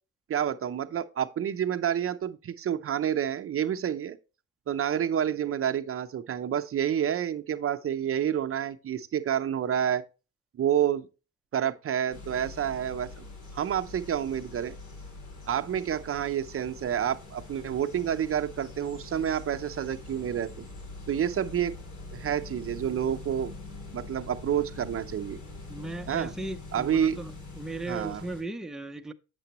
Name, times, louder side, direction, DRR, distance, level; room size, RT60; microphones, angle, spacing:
voice 1, 0.3-4.2 4.7-10.0 10.6-11.1 11.5-13.3 13.5-14.8 15.5-20.7 21.1-21.7 22.1-23.5 23.9-25.4 26.1-26.3 26.7-27.2 27.9-28.3, right 9 dB, 45° right, 0.6 m, -29 dB
sound 1, 12.1-28.4, left 3 dB, 75° left, 3.0 m, -44 dB
voice 2, 25.7-27.3 27.6-29.1, right 2 dB, ahead, 0.6 m, -37 dB
7.7 x 6.7 x 2.9 m
cardioid pair, 90°, 30 cm